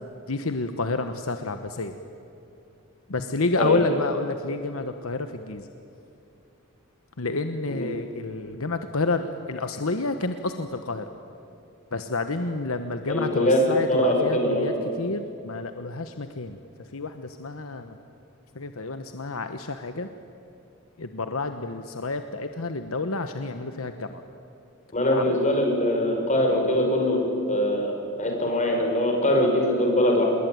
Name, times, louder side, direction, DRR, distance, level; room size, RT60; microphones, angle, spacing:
voice 1, 0.3-1.9 3.1-5.6 7.2-11.0 11.9-16.6 16.9-17.9 18.5-20.1 21.0-24.2 25.1-25.2, left 3 dB, 70° left, 8 dB, 1.2 m, -29 dB
voice 2, 3.6-3.9 7.7-7.8 13.1-13.6 13.9-14.8 24.9-27.2 27.5-30.3, left 1 dB, 35° left, 1 dB, 5.7 m, -22 dB
27.5 x 21.0 x 9.3 m, 2.7 s
head